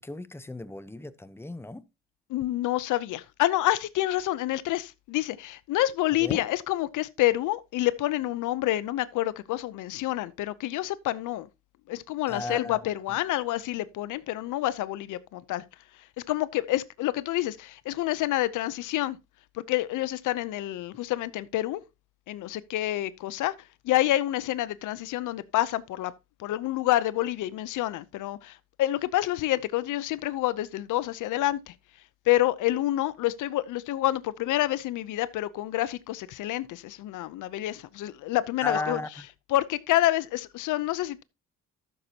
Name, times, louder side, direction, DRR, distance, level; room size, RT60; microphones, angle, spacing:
voice 1, 0.0-1.8 6.2-6.4 12.3-12.8 38.6-39.1, left 2 dB, 10° left, 0.7 m, -34 dB
voice 2, 2.3-11.5 11.9-15.6 16.3-19.2 19.5-21.8 22.3-23.5 23.8-26.1 26.4-31.7 32.3-39.0 39.5-41.2, left 15 dB, 85° left, 0.7 m, -28 dB
13.5 x 6.7 x 2.8 m
cardioid pair, 90°, 30 cm